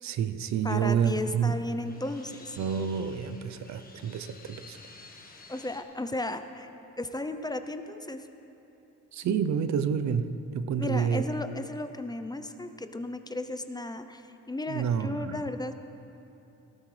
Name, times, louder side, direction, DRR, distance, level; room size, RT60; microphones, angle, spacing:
voice 1, 0.0-1.6 2.6-4.8 9.1-11.2 14.7-15.4, right 7 dB, 65° right, 11 dB, 0.7 m, -29 dB
voice 2, 0.6-2.6 5.5-6.7 7.0-8.3 10.8-15.7, left 2 dB, 15° left, 8 dB, 0.6 m, -34 dB
sound 1, 0.7-5.8, left 3 dB, 30° left, 1.5 m, -52 dB
18.5 x 13.0 x 3.3 m, 2.9 s
cardioid pair, 90°, 30 cm